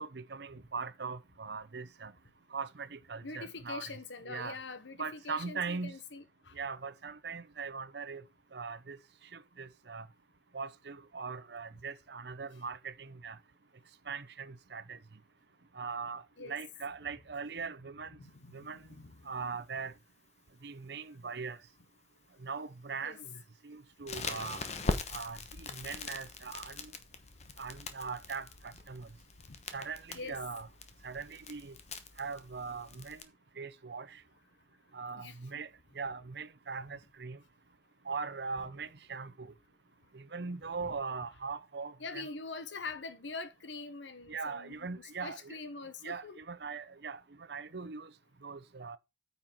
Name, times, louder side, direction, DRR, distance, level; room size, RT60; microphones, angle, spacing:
voice 1, 0.0-2.1 2.5-3.8 4.3-4.6 5.0-6.0 6.5-8.2 8.5-9.0 9.3-10.1 10.5-13.4 14.1-15.0 15.7-18.2 18.5-18.8 19.3-19.9 20.6-21.6 22.4-24.6 25.1-26.9 27.6-29.1 29.7-30.7 31.0-31.8 32.2-33.2 33.6-34.2 34.9-35.7 35.9-37.4 38.1-39.5 40.1-42.3 44.3-45.6 46.0-48.1 48.4-49.0, right 5 dB, 65° right, 0.7 m, -40 dB
voice 2, 3.2-6.5 16.4-16.5 18.2-19.3 23.0-23.2 30.1-30.4 35.2-35.4 40.8-40.9 42.0-46.4, left 3 dB, 85° left, 1.1 m, -44 dB
Crackle, 24.1-33.2, left 3 dB, 40° left, 1.0 m, -41 dB
9.1 x 5.5 x 4.4 m
head